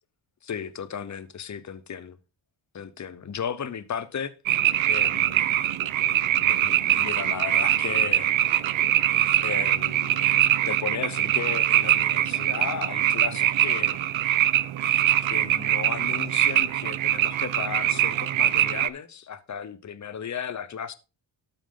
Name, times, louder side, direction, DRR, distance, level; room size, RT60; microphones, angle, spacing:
voice 1, 0.4-2.2 2.7-4.4 4.8-5.6 6.4-8.3 9.4-10.3 10.6-14.0 15.3-20.9, left 7 dB, 35° left, 0.8 m, -35 dB
sound 1, 4.5-18.9, right 12 dB, 75° right, 0.6 m, -23 dB
12.5 x 4.7 x 3.7 m
wide cardioid pair, 125°, 48 cm